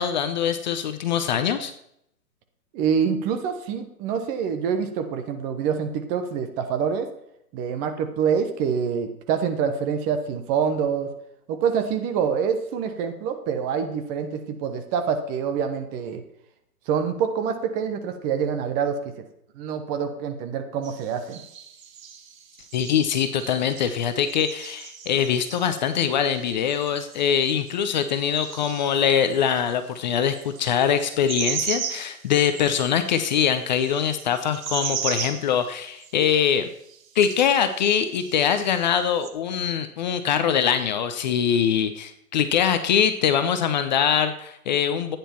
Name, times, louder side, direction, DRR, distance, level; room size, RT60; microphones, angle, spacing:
voice 1, 0.0-1.7 22.7-36.7 37.1-45.2, left 8 dB, 30° left, 10 dB, 0.7 m, -23 dB
voice 2, 2.7-7.1 7.5-11.1 11.5-16.2 16.9-19.2 19.5-21.4, right 7 dB, 20° right, 7 dB, 0.9 m, -26 dB
sound 1, 20.8-29.6 30.0-36.3 36.9-37.8 38.1-39.3, right 7 dB, 55° right, 1.8 m, -36 dB
14.5 x 9.6 x 4.5 m, 0.75 s
hypercardioid pair, 140°, 47 cm